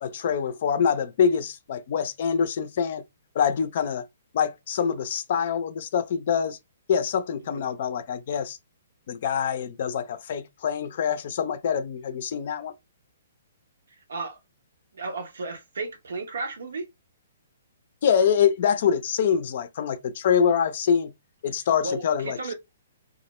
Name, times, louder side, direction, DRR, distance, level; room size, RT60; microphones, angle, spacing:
voice 1, 0.0-3.0 3.3-4.0 4.3-6.6 6.9-8.6 9.1-12.7 18.0-21.1 21.4-22.5, left 7 dB, 55° left, 0.4 m, -25 dB
voice 2, 13.9-14.4 14.9-16.9 21.8-22.5, right 3 dB, 80° right, 0.7 m, -34 dB
2.3 x 2.1 x 2.9 m
hypercardioid pair, 140°, 0 cm